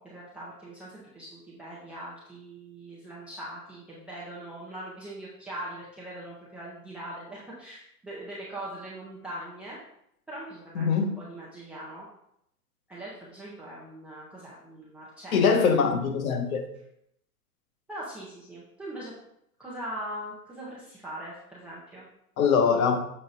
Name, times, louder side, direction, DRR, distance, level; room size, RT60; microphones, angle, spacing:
voice 1, 0.0-9.8 10.3-12.1 12.9-15.5 17.9-19.1 19.6-22.1, right 1 dB, 5° right, -8 dB, 0.3 m, -41 dB
voice 2, 10.7-11.1 15.3-16.6 22.4-23.0, left 6 dB, 60° left, 4 dB, 1.4 m, -22 dB
6.6 x 4.6 x 3.9 m, 0.75 s
hypercardioid pair, 110°, 47 cm